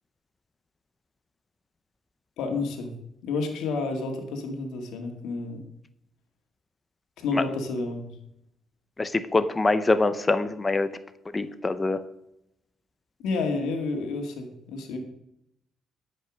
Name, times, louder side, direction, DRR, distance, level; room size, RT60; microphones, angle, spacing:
voice 1, 2.4-2.9 3.2-5.6 7.2-8.1 13.2-15.0, left 3 dB, 90° left, 3 dB, 2.0 m, -30 dB
voice 2, 9.0-10.9 11.3-12.0, left 3 dB, 25° left, 12 dB, 0.7 m, -24 dB
12.5 x 5.4 x 6.3 m, 0.80 s
cardioid pair, 90°, 0 cm